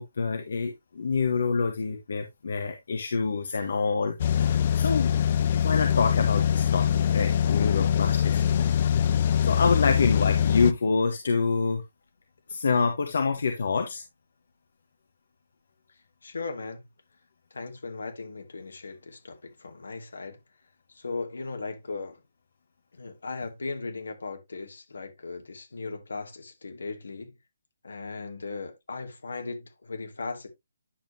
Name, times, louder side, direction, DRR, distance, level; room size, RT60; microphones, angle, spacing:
voice 1, 0.0-5.1 5.5-6.9 7.1-8.7 9.4-11.8 12.5-14.0, left 4 dB, 65° left, 1.3 m, -27 dB
sound 1, 4.2-10.7, left 9 dB, 40° left, 0.5 m, -23 dB
voice 2, 9.5-10.3 16.2-16.8 17.5-20.4 20.9-22.2 22.9-27.3 27.8-30.5, left 3 dB, 85° left, 2.6 m, -37 dB
10.0 x 5.3 x 2.9 m
hypercardioid pair, 160°, 0 cm